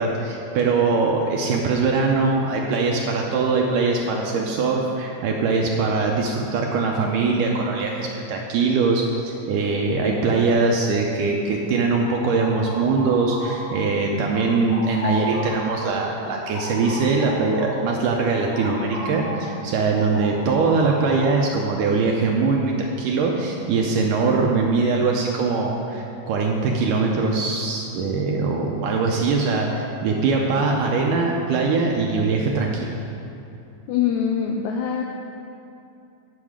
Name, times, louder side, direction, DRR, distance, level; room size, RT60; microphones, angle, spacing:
voice 1, 0.0-32.9, right 4 dB, 75° right, 0 dB, 2.1 m, -22 dB
sound 1, 11.7-14.0 14.3-19.5 19.8-21.6, equal, 45° left, 3.3 m, -34 dB
voice 2, 33.9-35.0, left 8 dB, 85° left, 1 dB, 1.7 m, -23 dB
9.1 x 7.0 x 4.9 m, 2.7 s
omnidirectional pair, 3.9 m